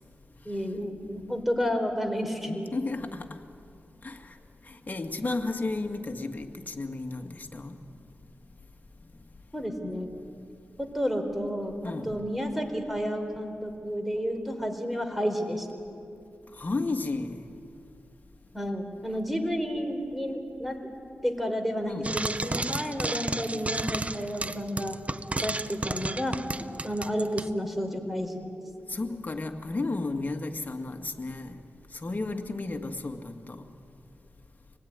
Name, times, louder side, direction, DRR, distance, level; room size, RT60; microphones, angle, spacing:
voice 1, 0.5-2.7 9.5-10.1 10.8-15.9 18.5-20.8 21.2-25.0 25.4-28.5, equal, 5° right, 4.1 m, -31 dB
voice 2, 2.7-3.4 4.0-7.8 11.8-12.2 16.5-17.5 21.9-22.2 28.9-31.6 31.9-33.7, left 3 dB, 40° left, 2.1 m, -33 dB
Frying (food), 22.0-27.5, right 2 dB, 30° right, 0.8 m, -32 dB
26.0 x 19.5 x 9.7 m
cardioid pair, 55°, 4 cm